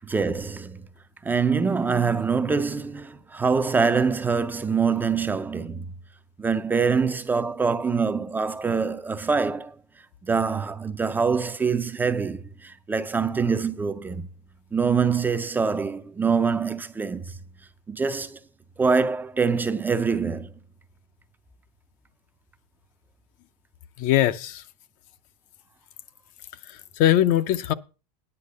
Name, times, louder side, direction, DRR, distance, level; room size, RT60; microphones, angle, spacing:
voice 1, 0.0-0.8 1.2-5.9 6.4-9.8 10.2-14.3 14.7-17.3 17.9-18.4 18.8-20.5, right 5 dB, 10° right, 0.4 m, -24 dB
voice 2, 24.0-24.6 26.7-27.7, left 12 dB, 45° left, 0.6 m, -21 dB
9.8 x 6.2 x 6.5 m
supercardioid pair, 150°, 20 cm